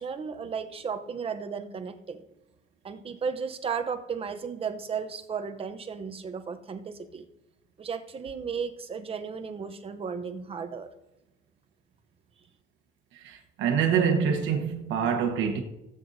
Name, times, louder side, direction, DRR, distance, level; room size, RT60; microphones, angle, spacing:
voice 1, 0.0-2.2 2.8-7.2 7.8-10.9, right 6 dB, 30° right, 0.7 m, -34 dB
voice 2, 13.2-15.6, right 7 dB, 80° right, 1.1 m, -25 dB
18.0 x 7.7 x 2.7 m
cardioid pair, 135°, 19 cm